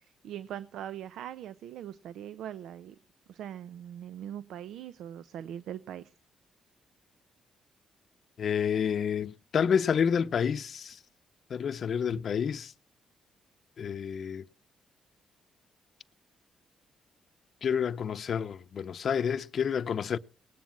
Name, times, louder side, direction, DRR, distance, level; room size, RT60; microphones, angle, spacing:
voice 1, 0.0-3.0 3.3-6.1, right 10 dB, 80° right, 0.7 m, -41 dB
voice 2, 8.4-11.0 11.5-12.7 13.8-14.4 17.6-20.2, left 7 dB, 55° left, 0.7 m, -29 dB
19.0 x 9.4 x 7.4 m
cardioid pair, 85°, 0 cm